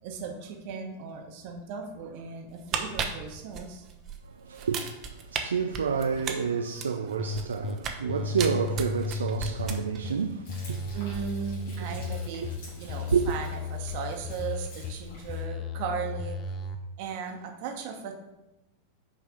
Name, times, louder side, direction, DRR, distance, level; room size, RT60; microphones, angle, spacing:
voice 1, 0.0-3.9 6.1-6.5 10.9-12.5 12.8-16.4 17.0-18.1, right 6 dB, 45° right, 1.1 m, -37 dB
sound 1, 2.5-4.2 4.5-5.4 5.7-8.0 8.4-10.1 10.4-10.6, right 7 dB, 30° right, 0.8 m, -34 dB
voice 2, 4.2-11.0 12.4-12.5 12.8-13.3, right 6 dB, 70° right, 0.4 m, -29 dB
sound 2, 7.2-7.7 8.1-10.1 10.5-12.6 12.9-14.9 15.3-16.8, left 4 dB, 35° left, 0.6 m, -34 dB
Frying (food), 10.4-15.4, left 3 dB, 55° left, 2.4 m, -48 dB
5.7 x 4.8 x 5.1 m
figure-of-eight pair, 90°, 0 cm